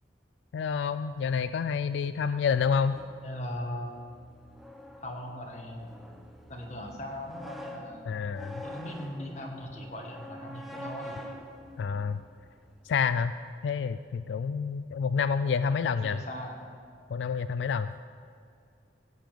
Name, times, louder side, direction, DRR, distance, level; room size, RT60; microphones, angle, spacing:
voice 1, 0.5-3.0 8.1-8.6 11.8-12.2 12.8-13.3 13.6-16.2 17.1-18.0, left 6 dB, 90° left, 12 dB, 0.3 m, -28 dB
sound 1, 2.9-12.8, equal, ahead, 0.9 m, -46 dB
voice 2, 3.2-4.0 5.0-5.9 6.4-8.1 8.6-11.2 16.0-16.6, left 1 dB, 40° left, 1 dB, 1.7 m, -39 dB
15.5 x 5.2 x 7.6 m, 2.3 s
head